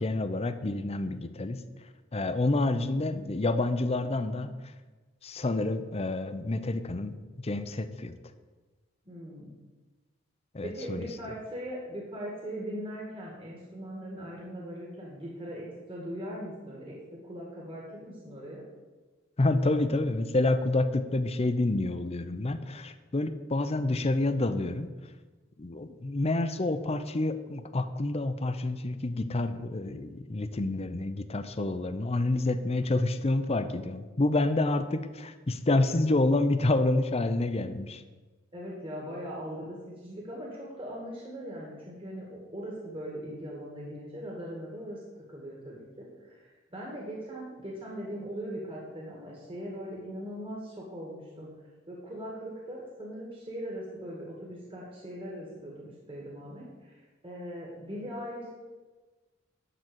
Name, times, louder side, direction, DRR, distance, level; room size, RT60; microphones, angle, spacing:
voice 1, 0.0-1.6 2.1-4.6 5.2-7.2 7.4-8.2 10.5-11.1 19.4-24.9 25.6-38.0, left 2 dB, 30° left, 10 dB, 0.6 m, -28 dB
voice 2, 9.1-9.5 10.6-17.0 17.2-18.6 38.5-39.8 40.0-45.0 45.3-51.5 51.9-58.5, equal, 30° right, -4 dB, 2.0 m, -40 dB
12.0 x 4.0 x 7.9 m, 1.3 s
head